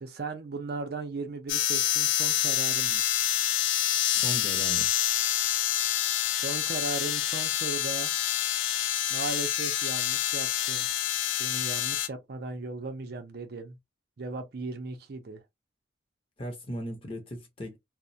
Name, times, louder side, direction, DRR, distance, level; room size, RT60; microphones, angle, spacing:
voice 1, 0.0-3.0 6.3-8.1 9.1-10.9 11.4-13.8 14.2-15.4, right 3 dB, 55° right, 0.5 m, -37 dB
sound 1, 1.5-12.1, left 12 dB, 75° left, 0.3 m, -27 dB
voice 2, 4.1-4.9 16.4-17.8, equal, 30° left, 0.7 m, -37 dB
2.2 x 2.1 x 2.6 m
head